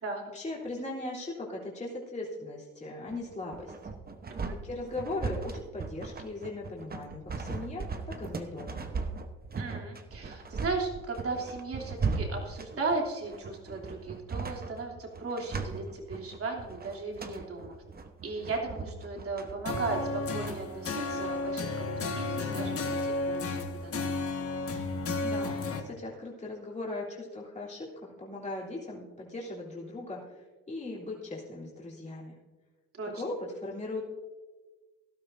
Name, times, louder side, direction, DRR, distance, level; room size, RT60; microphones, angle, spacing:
voice 1, 0.3-3.7 4.6-8.8 25.2-32.4 33.1-34.0, left 2 dB, 25° left, -5 dB, 3.4 m, -39 dB
sound 1, 3.1-20.6, right 4 dB, 30° right, 1.0 m, -37 dB
voice 2, 9.5-17.7 18.2-24.2 33.0-33.1, right 3 dB, 50° right, 0 dB, 3.0 m, -36 dB
sound 2, 19.7-25.8, left 3 dB, 50° left, 1.7 m, -32 dB
18.0 x 12.0 x 2.7 m, 1.3 s
cardioid pair, 90°, 30 cm